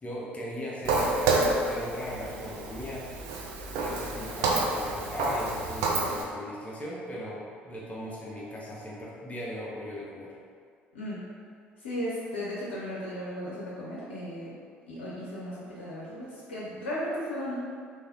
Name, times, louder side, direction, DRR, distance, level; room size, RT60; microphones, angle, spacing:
voice 1, 0.0-3.1 3.8-10.4, equal, 25° left, -5 dB, 0.6 m, -38 dB
Walk footsteps, 0.8-6.2, right 3 dB, 65° right, 0.4 m, -29 dB
voice 2, 11.8-14.5 14.9-17.5, equal, 80° left, -8 dB, 0.5 m, -35 dB
3.2 x 2.6 x 2.5 m, 2.1 s
figure-of-eight pair, 55°, 6 cm